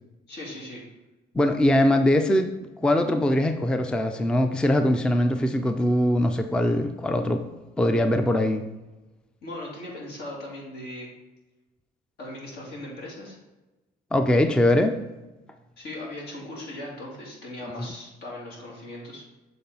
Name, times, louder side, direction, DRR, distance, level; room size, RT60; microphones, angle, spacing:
voice 1, 0.3-0.8 9.4-11.1 12.2-13.4 15.8-19.2, left 1 dB, 70° left, -2 dB, 2.1 m, -38 dB
voice 2, 1.3-2.5 2.8-7.4 7.8-8.6 14.1-15.0 17.8-17.9, left 1 dB, 5° left, 7 dB, 0.4 m, -22 dB
7.0 x 3.8 x 3.9 m, 1.1 s
cardioid pair, 110°, 17 cm